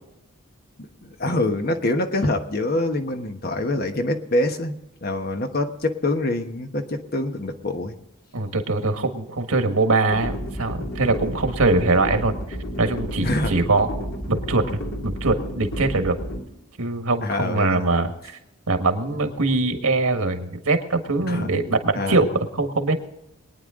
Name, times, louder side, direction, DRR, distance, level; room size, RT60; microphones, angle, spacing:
voice 1, 0.8-4.7 5.0-7.9 13.2-13.6 17.2-17.8 21.3-21.5 21.9-22.2, left 1 dB, 45° left, 5 dB, 1.2 m, -25 dB
voice 2, 8.3-12.3 12.8-13.9 14.3-14.6 15.0-16.2 16.8-18.4 18.7-22.3 22.5-23.0, right 3 dB, 90° right, 6 dB, 1.7 m, -22 dB
sound 1, 10.1-16.4, equal, 70° left, 2.5 m, -31 dB
23.0 x 9.6 x 3.8 m, 0.89 s
head